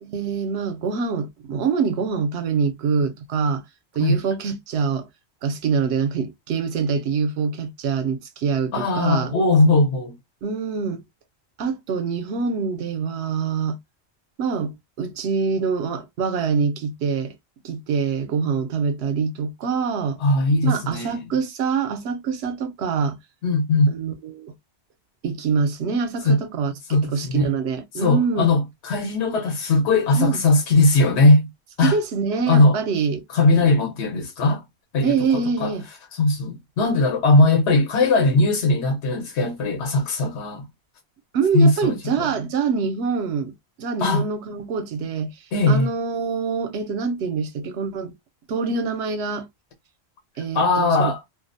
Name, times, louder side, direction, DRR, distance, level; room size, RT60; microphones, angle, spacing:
voice 1, 0.0-3.6 3.9-5.1 5.4-9.3 10.4-11.0 11.6-13.8 14.4-17.3 17.6-20.2 20.6-23.2 23.9-24.5 25.2-26.7 27.0-28.5 30.1-30.4 31.8-33.2 33.5-33.7 35.0-35.8 41.3-43.5 43.8-45.4 45.7-48.1 48.5-49.5 50.4-51.1, right 5 dB, 75° right, 0.8 m, -25 dB
voice 2, 8.7-10.1 20.2-21.3 23.4-24.0 26.3-26.4 26.9-27.5 27.9-31.5 31.8-32.0 32.5-32.8 33.3-34.6 34.9-35.7 36.1-40.7 41.5-42.3 44.0-44.3 45.5-45.9 50.5-51.2, left 2 dB, 80° left, 1.0 m, -19 dB
2.4 x 2.0 x 2.4 m
omnidirectional pair, 1.1 m